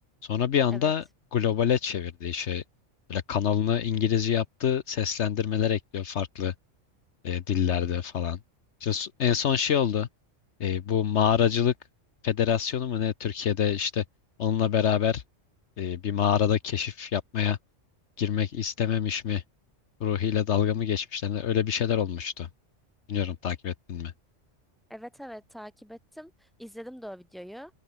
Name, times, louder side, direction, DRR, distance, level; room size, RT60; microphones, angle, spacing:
voice 1, 0.2-1.0 1.3-2.6 3.1-6.5 7.2-8.4 8.8-10.1 10.6-11.7 12.2-14.0 14.4-15.2 15.8-17.6 18.2-19.4 20.0-22.5 23.1-24.1, left 8 dB, 65° left, 1.1 m, -26 dB
voice 2, 24.9-27.7, equal, ahead, 7.1 m, -43 dB
open air
omnidirectional pair, 1.3 m